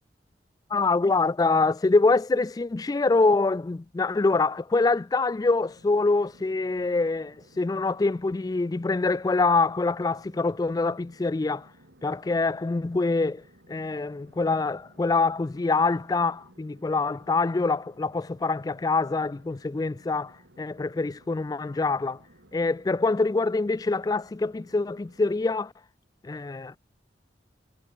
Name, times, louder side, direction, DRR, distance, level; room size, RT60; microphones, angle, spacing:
voice 1, 0.7-11.7 12.0-13.4 13.7-22.2 22.5-25.7 26.2-26.8, left 3 dB, 20° left, 0.3 m, -25 dB
sound 1, 5.6-25.5, right 1 dB, 80° right, 5.8 m, -57 dB
head